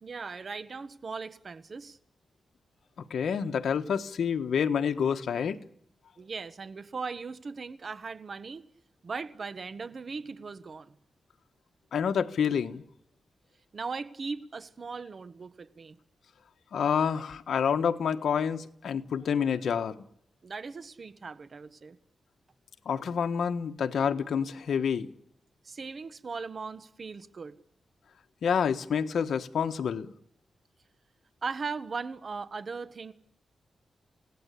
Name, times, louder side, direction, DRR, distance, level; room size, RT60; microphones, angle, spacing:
voice 1, 0.0-2.0 6.2-8.6 9.0-10.9 13.7-16.0 20.4-22.0 25.6-27.6 31.4-33.1, right 4 dB, 50° right, 1.5 m, -38 dB
voice 2, 3.1-5.6 11.9-12.8 16.7-20.0 22.8-25.1 28.4-30.1, left 7 dB, 80° left, 1.4 m, -28 dB
29.0 x 18.0 x 8.5 m
cardioid pair, 85°, 0 cm